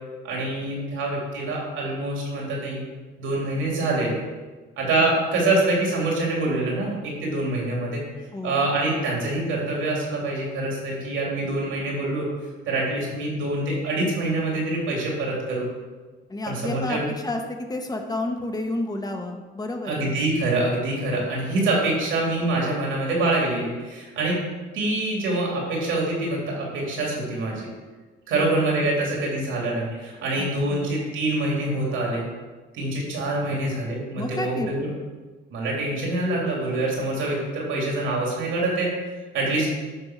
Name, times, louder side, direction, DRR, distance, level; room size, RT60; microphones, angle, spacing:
voice 1, 0.2-2.8 3.2-4.3 4.8-8.0 8.4-12.3 12.7-15.7 16.5-17.1 19.8-24.4 24.7-27.7 28.3-32.3 32.7-34.9 35.5-39.0 39.3-39.7, right 2 dB, 85° right, -3 dB, 3.0 m, -25 dB
voice 2, 8.3-8.6 16.3-17.4 17.7-20.1 28.3-28.9 30.4-30.9 34.2-34.7, left 2 dB, 20° left, 3 dB, 1.2 m, -31 dB
10.5 x 3.7 x 6.2 m, 1.3 s
cardioid pair, 90°, 20 cm